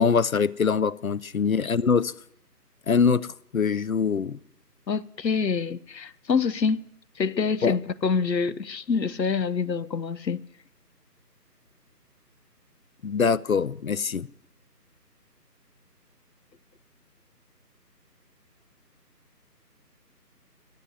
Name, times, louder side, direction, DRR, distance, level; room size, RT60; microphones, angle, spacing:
voice 1, 0.0-2.1 2.9-3.3 3.5-4.4 7.6-7.8 13.0-14.3, left 5 dB, 60° left, 0.5 m, -23 dB
voice 2, 4.9-6.8 7.2-10.4, left 5 dB, 85° left, 0.9 m, -26 dB
13.5 x 8.5 x 9.0 m
figure-of-eight pair, 160°, 49 cm